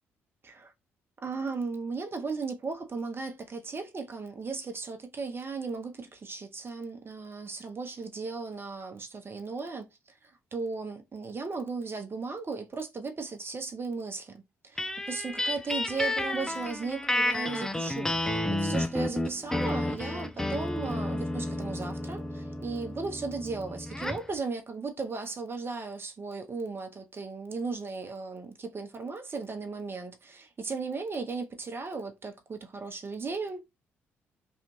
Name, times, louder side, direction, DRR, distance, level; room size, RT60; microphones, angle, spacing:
voice 1, 1.2-10.2 10.5-33.6, right 4 dB, 35° right, 1.0 m, -36 dB
sound 1, 14.8-24.3, left 1 dB, 10° left, 0.6 m, -31 dB
3.2 x 2.5 x 3.1 m
hypercardioid pair, 45°, 7 cm